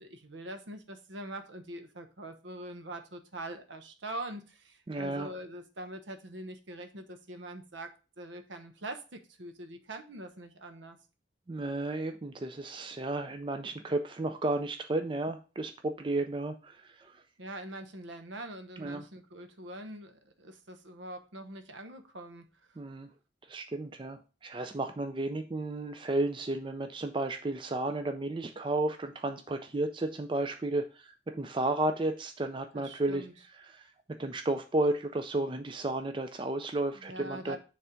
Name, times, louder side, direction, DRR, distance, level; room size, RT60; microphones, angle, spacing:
voice 1, 0.0-7.9 8.2-11.0 17.4-22.8 32.7-33.3 36.9-37.6, right 1 dB, 75° right, 7 dB, 0.9 m, -43 dB
voice 2, 4.9-5.3 11.5-17.1 18.8-19.0 22.8-23.1 23.5-33.2 33.7-33.8 34.2-37.6, right 2 dB, 25° right, 7 dB, 0.4 m, -33 dB
7.1 x 3.4 x 5.0 m, 0.33 s
head